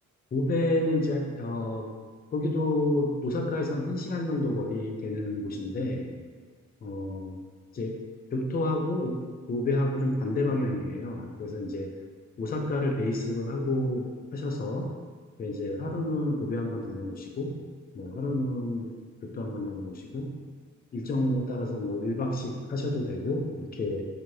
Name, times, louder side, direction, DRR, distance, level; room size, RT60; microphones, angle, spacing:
voice 1, 0.3-1.9 2.3-6.1 6.8-7.4 7.7-8.0 8.3-9.2 9.5-11.9 12.4-14.9 15.4-17.6 17.9-18.9 19.2-20.3 20.9-24.0, left 1 dB, 30° left, 1 dB, 0.4 m, -29 dB
2.6 x 2.4 x 3.1 m, 1.5 s
wide cardioid pair, 105°, 31 cm